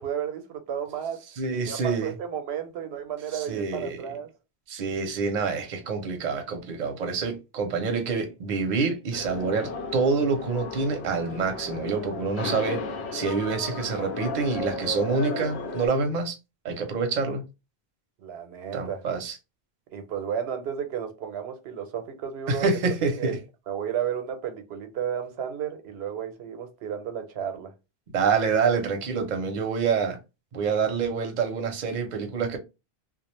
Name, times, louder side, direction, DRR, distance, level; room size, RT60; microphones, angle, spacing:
voice 1, 0.0-1.2 1.5-4.3 18.2-19.0 19.9-22.8 23.2-23.4 23.7-27.7, right 8 dB, 85° right, 0.8 m, -33 dB
voice 2, 1.4-2.1 3.3-4.1 4.7-12.9 13.1-16.4 16.6-17.4 18.7-19.4 22.5-23.4 28.1-30.2 30.5-32.6, right 4 dB, 50° right, 0.6 m, -27 dB
sound 1, 9.1-15.9, left 3 dB, 90° left, 0.9 m, -34 dB
2.3 x 2.1 x 2.9 m
omnidirectional pair, 1.1 m